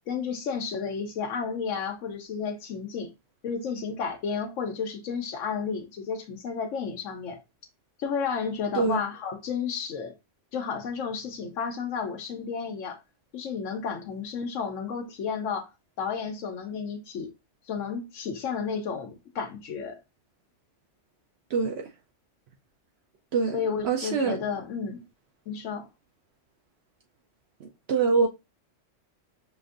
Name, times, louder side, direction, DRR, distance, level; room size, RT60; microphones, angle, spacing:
voice 1, 0.1-3.1 3.4-7.4 8.0-10.1 10.5-13.0 13.3-15.7 16.0-17.3 17.7-20.0 23.5-25.0 25.5-25.9, left 6 dB, 85° left, 1.1 m, -32 dB
voice 2, 21.5-21.9 23.3-23.6 23.8-24.4 27.6-28.3, right 5 dB, 65° right, 0.8 m, -25 dB
5.3 x 2.5 x 2.4 m
omnidirectional pair, 1.3 m